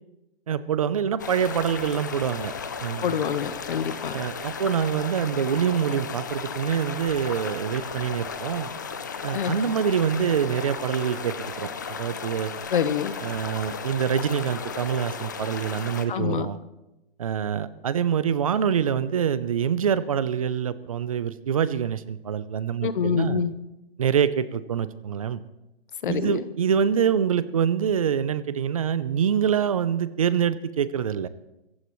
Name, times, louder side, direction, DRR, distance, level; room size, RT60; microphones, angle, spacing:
voice 1, 0.5-2.5 2.8-3.1 4.1-8.7 9.2-11.7 12.0-12.5 13.2-16.6 17.2-23.4 24.0-25.4 26.1-31.3, right 8 dB, 35° right, 15 dB, 0.6 m, -25 dB
sound 1, 1.2-16.1, left 5 dB, 20° left, 0.5 m, -35 dB
voice 2, 3.0-4.2 9.3-9.7 12.7-13.1 16.1-16.5 22.8-23.5 26.0-26.4, left 7 dB, 55° left, 13 dB, 1.1 m, -26 dB
26.0 x 15.0 x 3.1 m, 0.95 s
hypercardioid pair, 170°, 31 cm